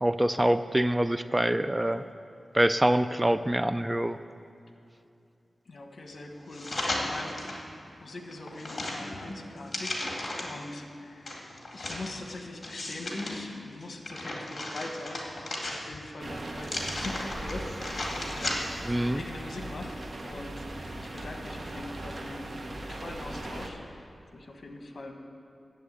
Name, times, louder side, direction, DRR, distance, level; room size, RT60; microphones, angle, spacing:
voice 1, 0.0-2.0 2.5-4.2 18.9-19.2, right 1 dB, 15° right, 11 dB, 0.3 m, -25 dB
voice 2, 5.6-20.6 20.9-22.5 22.9-25.1, left 2 dB, 60° left, 4 dB, 1.3 m, -42 dB
sound 1, 6.5-7.6 8.1-10.6 11.3-13.3 13.8-16.1 16.6-18.9 19.3-19.4, left 1 dB, 45° left, 2.2 m, -35 dB
sound 2, 16.2-23.7, right 1 dB, 50° right, 1.2 m, -39 dB
10.5 x 7.9 x 8.4 m, 2.6 s
wide cardioid pair, 80°, 0 cm